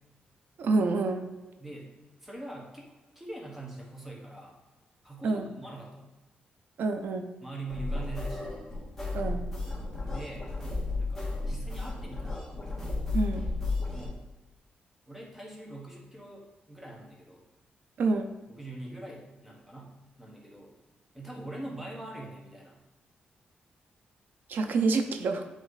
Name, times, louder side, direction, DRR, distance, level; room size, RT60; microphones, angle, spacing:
voice 1, 0.6-1.2 5.2-5.5 6.8-7.3 9.1-9.4 13.1-13.4 18.0-18.3 24.5-25.4, right 3 dB, 75° right, 7 dB, 0.6 m, -27 dB
voice 2, 2.2-4.5 5.0-6.1 7.4-8.5 10.0-10.5 11.0-12.6 13.9-14.2 15.1-17.4 18.5-19.9 20.2-20.7 21.1-22.8, right 2 dB, 10° right, -2 dB, 1.3 m, -43 dB
sound 1, 7.7-14.1, left 2 dB, 10° left, 1.9 m, -33 dB
8.2 x 3.1 x 4.1 m, 1.1 s
wide cardioid pair, 130°, 3 cm